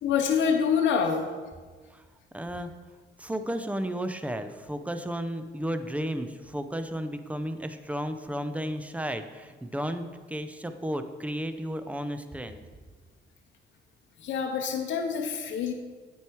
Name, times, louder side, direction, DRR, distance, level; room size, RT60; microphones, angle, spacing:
voice 1, 0.0-1.3 14.2-15.7, left 6 dB, 70° left, 3 dB, 0.7 m, -26 dB
voice 2, 2.3-2.7 3.2-12.6, equal, 5° right, 9 dB, 0.5 m, -33 dB
8.9 x 4.6 x 4.6 m, 1.5 s
cardioid pair, 90°, 20 cm